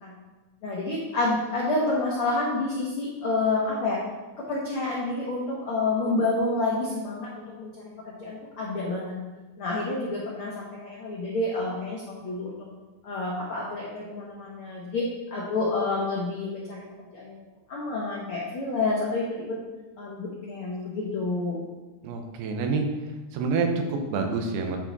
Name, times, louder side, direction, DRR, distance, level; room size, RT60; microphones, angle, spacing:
voice 1, 0.6-4.0 4.5-7.7 8.1-9.1 9.6-12.6 13.0-16.8 17.1-17.4 17.7-19.3 20.0-21.6, left 2 dB, 80° left, -5 dB, 1.2 m, -28 dB
voice 2, 22.0-22.9 23.3-24.8, right 4 dB, 85° right, 4 dB, 2.9 m, -27 dB
9.3 x 5.1 x 4.0 m, 1.2 s
omnidirectional pair, 4.4 m